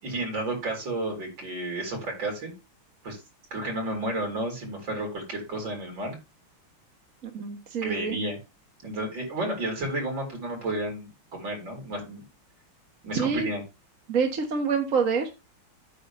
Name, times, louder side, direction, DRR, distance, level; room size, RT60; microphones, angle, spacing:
voice 1, 0.0-2.5 3.0-3.2 3.5-6.2 7.8-8.4 8.8-12.2 13.0-13.6, right 1 dB, 60° right, 1 dB, 4.7 m, -32 dB
voice 2, 7.3-8.2 13.1-13.5 14.1-15.3, right 5 dB, 45° right, 3 dB, 1.5 m, -26 dB
9.0 x 3.9 x 6.9 m, 0.26 s
omnidirectional pair, 2.3 m